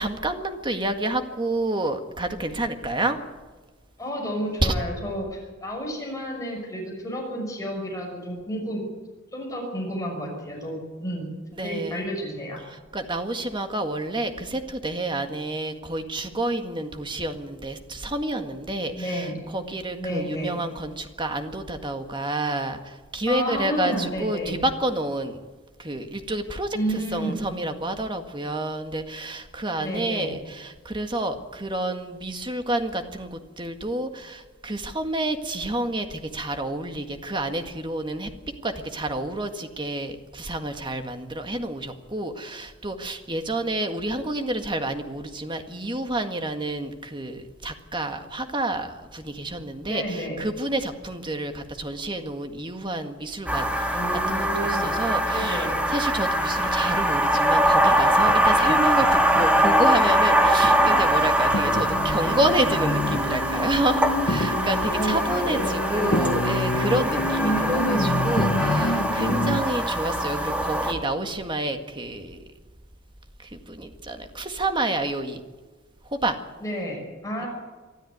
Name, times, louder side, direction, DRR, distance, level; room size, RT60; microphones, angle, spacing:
voice 1, 0.0-3.2 4.6-4.7 11.5-12.1 12.9-25.4 25.8-38.3 38.6-54.0 54.3-72.4 73.4-75.4 76.1-76.4 77.4-77.5, right 1 dB, 25° right, 6 dB, 1.7 m, -29 dB
voice 2, 4.0-8.8 9.3-11.3 11.6-12.6 18.9-19.4 20.0-20.5 23.3-24.5 26.7-27.4 29.8-30.4 49.9-50.4 53.9-55.0 55.3-55.8 64.9-66.2 67.4-68.2 76.6-77.5, equal, 15° left, -1 dB, 6.0 m, -30 dB
sound 1, 53.5-70.9, right 1 dB, 5° right, 2.1 m, -23 dB
sound 2, 56.6-59.8 60.1-69.6, left 1 dB, 55° left, 1.3 m, -29 dB
24.0 x 13.0 x 9.4 m, 1.3 s
head